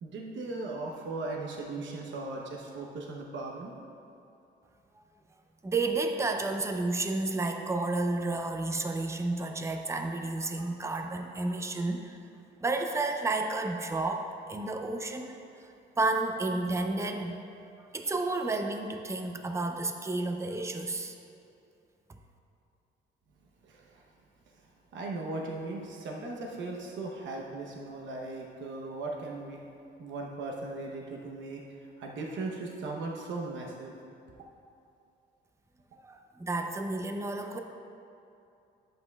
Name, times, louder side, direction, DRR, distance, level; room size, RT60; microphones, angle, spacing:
voice 1, 0.0-3.7 23.6-24.1 24.9-29.6 30.0-31.6 32.0-33.9, right 2 dB, 70° right, -1 dB, 0.9 m, -38 dB
voice 2, 5.6-12.2 12.6-15.4 16.0-17.4 17.9-21.1 36.0-37.6, right 2 dB, 15° right, 4 dB, 0.6 m, -31 dB
11.0 x 7.8 x 2.3 m, 2.6 s
cardioid pair, 90°, 20 cm